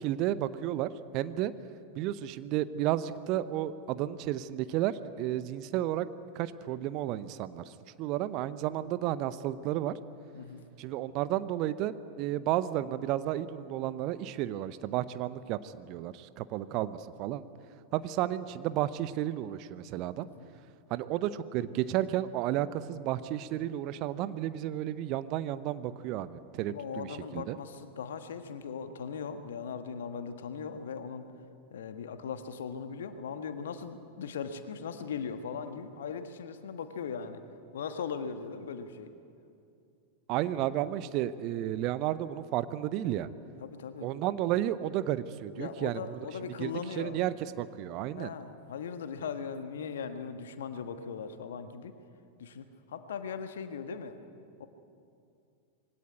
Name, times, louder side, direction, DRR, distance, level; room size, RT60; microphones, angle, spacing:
voice 1, 0.0-1.5 1.9-6.1 6.3-7.7 8.0-9.9 10.8-17.4 17.9-20.3 20.9-27.6 40.3-43.3 44.0-46.0 46.6-48.3, right 13 dB, 40° right, 15 dB, 0.7 m, -32 dB
voice 2, 10.3-10.7 20.2-20.5 26.7-31.3 31.7-37.4 37.7-39.1 40.5-40.7 43.6-44.1 45.6-47.2 48.1-51.9 52.4-54.2 54.6-54.7, left 6 dB, 60° left, 9 dB, 1.4 m, -39 dB
21.5 x 17.0 x 9.6 m, 2.5 s
figure-of-eight pair, 90°, 0 cm